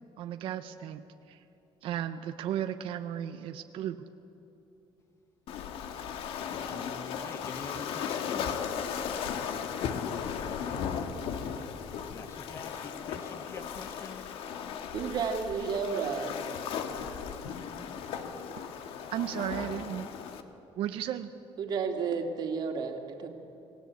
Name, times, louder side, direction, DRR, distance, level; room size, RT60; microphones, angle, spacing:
voice 1, 0.2-1.0 1.3-1.4 1.8-4.1 19.1-20.1 20.8-21.3, right 10 dB, 65° right, 8 dB, 0.8 m, -34 dB
Waves surf, 5.5-20.4, left 7 dB, 70° left, 1.7 m, -36 dB
voice 2, 6.7-8.8 12.1-14.2, left 4 dB, 25° left, 8 dB, 1.3 m, -45 dB
voice 3, 14.9-16.4 21.6-23.3, right 5 dB, 45° right, 3 dB, 2.5 m, -32 dB
29.0 x 18.0 x 8.3 m, 3.0 s
cardioid pair, 175°, 10 cm